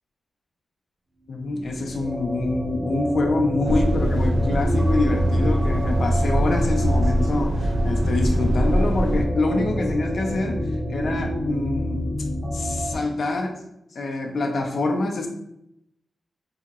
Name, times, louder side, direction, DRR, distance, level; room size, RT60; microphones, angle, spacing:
voice 1, 1.3-10.6 10.9-12.1 12.5-13.6 13.9-15.3, left 2 dB, 60° left, 2 dB, 0.4 m, -25 dB
sound 1, 1.5-12.9, equal, 10° right, 0.5 m, -28 dB
Truck, 3.6-9.3, equal, 85° right, 0.3 m, -22 dB
2.8 x 2.7 x 2.4 m, 0.78 s
wide cardioid pair, 110°, 0 cm